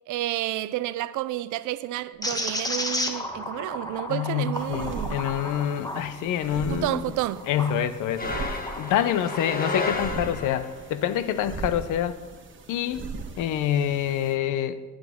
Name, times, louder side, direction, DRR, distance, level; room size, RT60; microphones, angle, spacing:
voice 1, 0.1-5.2 6.7-7.5, right 15 dB, 80° right, 0.5 m, -30 dB
sound 1, 2.2-7.8 8.3-9.5, left 1 dB, 10° left, 1.1 m, -33 dB
voice 2, 4.1-7.0 7.5-12.2 12.7-13.1 13.4-14.8, left 10 dB, 85° left, 0.7 m, -26 dB
sound 2, 4.5-14.4, right 4 dB, 40° right, 1.4 m, -40 dB
sound 3, 8.2-10.8, left 3 dB, 30° left, 1.4 m, -32 dB
17.5 x 6.4 x 3.6 m
cardioid pair, 90°, 30 cm